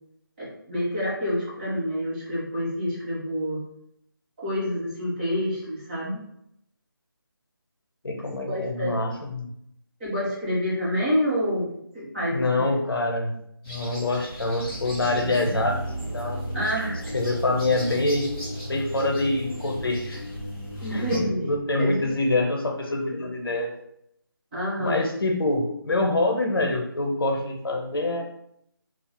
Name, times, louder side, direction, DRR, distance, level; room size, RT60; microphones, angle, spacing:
voice 1, 0.4-3.6 4.4-6.2 8.5-9.0 10.0-11.7 11.9-12.6 16.5-17.0 20.8-21.5 21.8-22.0 24.5-25.0, equal, 25° right, -9 dB, 1.3 m, -27 dB
voice 2, 8.0-9.5 12.3-13.3 13.7-15.9 16.1-16.4 17.1-18.3 18.7-20.2 20.9-23.7 24.8-28.2, left 2 dB, 75° left, 3 dB, 0.6 m, -25 dB
sound 1, 13.6-21.2, equal, 10° left, 0.5 m, -42 dB
sound 2, 14.3-22.2, equal, 90° right, 0.8 m, -34 dB
3.5 x 2.3 x 2.2 m, 0.74 s
figure-of-eight pair, 165°, 12 cm